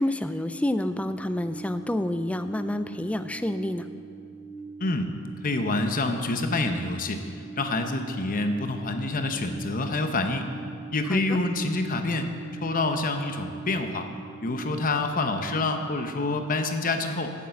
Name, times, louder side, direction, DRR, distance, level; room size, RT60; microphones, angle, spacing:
voice 1, 0.0-3.9 11.1-11.4, left 1 dB, 5° left, 10 dB, 0.3 m, -28 dB
sound 1, 0.7-16.5, right 5 dB, 85° left, 1.3 m, -43 dB
voice 2, 5.4-7.3 7.6-10.5 10.9-12.3 12.6-14.1 14.4-17.3, left 2 dB, 40° left, 6 dB, 0.8 m, -27 dB
8.3 x 8.2 x 7.6 m, 2.4 s
head